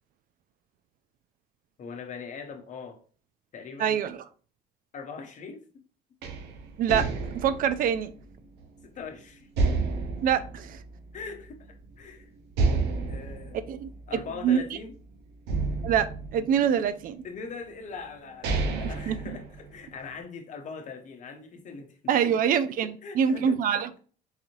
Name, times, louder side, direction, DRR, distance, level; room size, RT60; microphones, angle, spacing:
voice 1, 1.8-3.0 3.5-4.1 4.9-5.6 8.8-9.5 11.1-12.3 13.1-13.7 14.1-14.9 17.2-22.4 23.0-23.8, left 5 dB, 45° left, 5 dB, 0.8 m, -41 dB
voice 2, 3.8-4.2 6.8-8.1 10.2-10.8 13.7-13.9 14.4-14.6 15.8-17.2 18.7-19.2 22.1-23.9, right 8 dB, 55° right, 13 dB, 0.4 m, -25 dB
sound 1, 6.2-9.0 9.6-11.5 11.8-11.9 12.5-14.9 15.5-17.1 17.8-17.9 18.2-20.1, right 3 dB, 80° right, 0.8 m, -30 dB
3.9 x 2.7 x 3.0 m, 0.40 s
cardioid pair, 110°, 17 cm